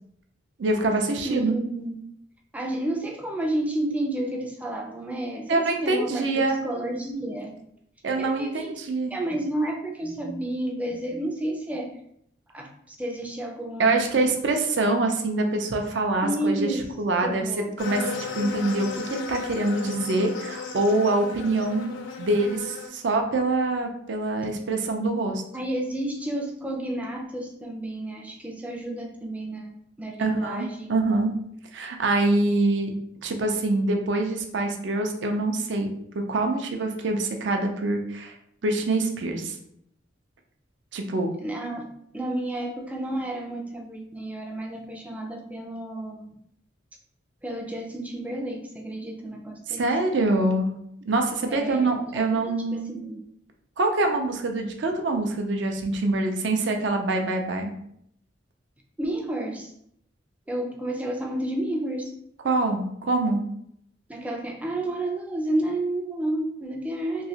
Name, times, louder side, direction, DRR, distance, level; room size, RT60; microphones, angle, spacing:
voice 1, 0.6-1.6 5.5-6.6 8.0-9.1 13.8-17.4 17.8-21.9 22.2-25.4 30.2-31.3 31.7-32.9 33.2-35.9 36.1-38.3 38.6-39.6 40.9-41.3 49.7-50.7 51.1-52.9 53.8-57.7 62.4-63.4, right 2 dB, 70° right, 4 dB, 0.5 m, -25 dB
voice 2, 1.2-2.0 2.5-7.6 8.2-8.8 9.1-11.9 12.5-14.2 16.2-16.9 17.2-17.8 25.5-29.7 30.0-30.9 41.4-41.9 42.1-46.3 47.4-49.9 51.5-53.2 59.0-59.7 60.5-62.1 64.1-67.3, right 1 dB, 10° right, 1 dB, 0.4 m, -31 dB
sound 1, 17.8-22.9, left 4 dB, 85° left, 0.6 m, -35 dB
3.1 x 2.7 x 2.8 m, 0.71 s
head